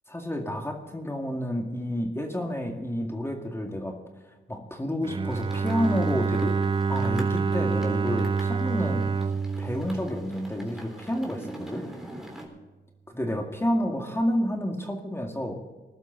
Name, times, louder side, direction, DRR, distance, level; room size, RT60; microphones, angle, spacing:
voice 1, 0.1-4.0 4.2-6.6 6.9-9.3 9.6-11.9 13.1-15.6, equal, 15° left, 2 dB, 2.1 m, -30 dB
Bowed string instrument, 5.0-11.0, right 5 dB, 25° right, 0.6 m, -27 dB
rain on window, 5.3-12.5, right 1 dB, ahead, 3.5 m, -45 dB
20.0 x 12.0 x 3.9 m, 1.2 s
cardioid pair, 85°, 19 cm